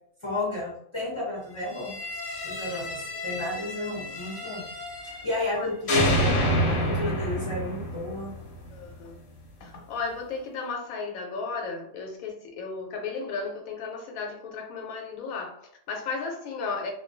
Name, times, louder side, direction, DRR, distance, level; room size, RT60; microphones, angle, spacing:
voice 1, 0.2-2.0 2.4-4.7 5.0-8.3, left 2 dB, 35° left, 0.5 m, -32 dB
sound 1, 1.7-5.6 5.9-8.9, equal, 60° left, 0.8 m, -29 dB
voice 2, 8.7-9.1 9.6-16.9, left 4 dB, 90° left, 1.1 m, -34 dB
2.3 x 2.2 x 2.5 m
omnidirectional pair, 1.5 m